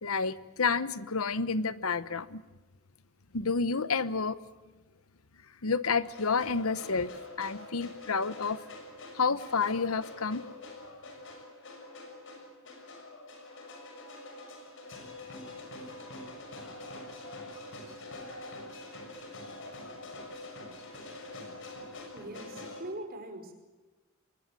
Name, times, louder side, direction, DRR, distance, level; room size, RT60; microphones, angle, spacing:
voice 1, 0.0-2.4 3.3-4.4 5.6-8.6 9.1-10.5, left 4 dB, 80° left, 16 dB, 1.0 m, -30 dB
sound 1, 6.0-22.8, left 2 dB, 60° left, 6.1 m, -45 dB
voice 2, 21.9-23.5, right 1 dB, 45° right, 5 dB, 4.9 m, -42 dB
26.0 x 21.0 x 7.6 m, 1.2 s
head